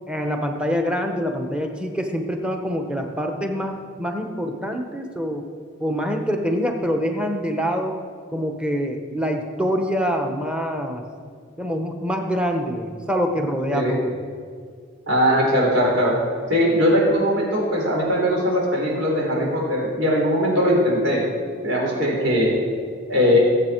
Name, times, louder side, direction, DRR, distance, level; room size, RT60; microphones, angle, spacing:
voice 1, 0.1-5.4 5.8-8.0 8.3-11.0 11.6-14.1, equal, 5° right, 3 dB, 1.0 m, -25 dB
voice 2, 15.1-16.1 16.5-21.2 21.6-22.5 23.1-23.4, equal, 80° right, -2 dB, 4.3 m, -20 dB
20.5 x 8.0 x 4.6 m, 2.1 s
head